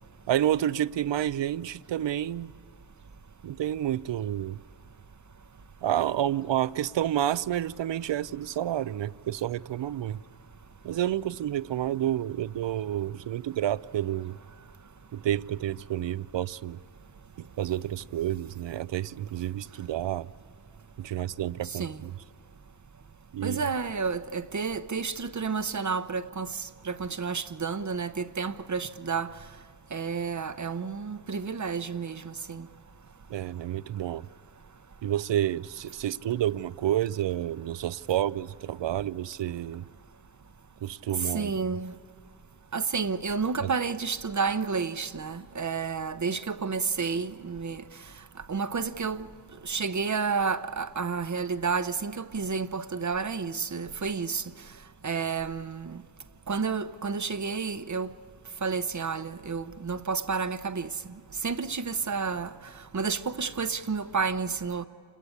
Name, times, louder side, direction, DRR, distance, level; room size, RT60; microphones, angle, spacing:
voice 1, 0.3-2.5 3.4-4.6 5.8-10.2 10.8-14.4 15.1-16.8 17.4-20.3 21.0-22.1 23.3-23.6 33.3-34.3 35.0-39.8 40.8-41.5 43.6-43.7, right 12 dB, 70° right, 0.6 m, -29 dB
voice 2, 21.7-22.0 23.4-29.3 29.9-32.7 41.3-41.9 42.7-47.8 48.5-49.3 49.6-54.4 55.0-56.0 56.5-58.1 58.6-60.9 61.4-62.5 62.9-64.9, right 5 dB, 40° right, 0.8 m, -30 dB
27.5 x 21.5 x 8.6 m
cardioid pair, 55°, 45 cm